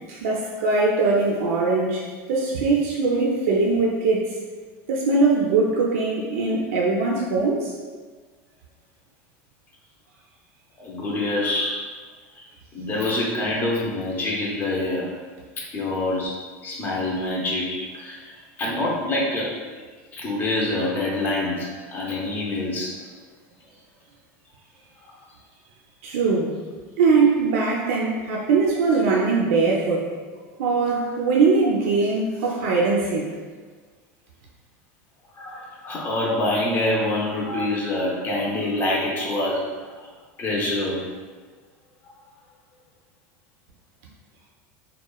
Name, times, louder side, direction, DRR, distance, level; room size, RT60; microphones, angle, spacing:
voice 1, 0.1-2.0 2.3-4.3 4.9-7.7 26.0-26.5 27.0-30.1 30.6-33.2, right 4 dB, 80° right, -2 dB, 0.4 m, -21 dB
voice 2, 10.8-11.9 12.4-12.5 12.7-15.1 15.7-16.4 16.6-18.3 18.6-19.6 20.1-22.9 35.4-40.1 40.4-41.1 42.0-42.1, left 2 dB, 25° left, -4 dB, 0.6 m, -26 dB
2.9 x 2.1 x 2.2 m, 1.4 s
supercardioid pair, 140°, 7 cm